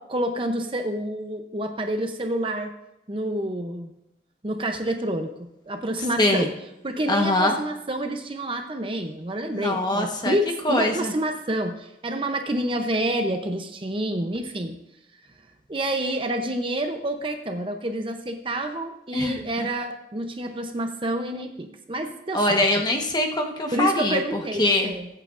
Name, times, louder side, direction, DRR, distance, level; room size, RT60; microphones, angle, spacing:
voice 1, 0.0-2.7 3.1-3.9 4.4-6.5 6.8-14.8 15.7-22.6 23.7-25.1, right 1 dB, 30° right, 6 dB, 0.7 m, -28 dB
voice 2, 6.2-6.5 7.1-7.6 9.5-10.4 10.6-11.1 19.1-19.5 22.3-24.9, left 1 dB, 25° left, 2 dB, 1.2 m, -23 dB
22.0 x 8.7 x 2.6 m, 0.86 s
head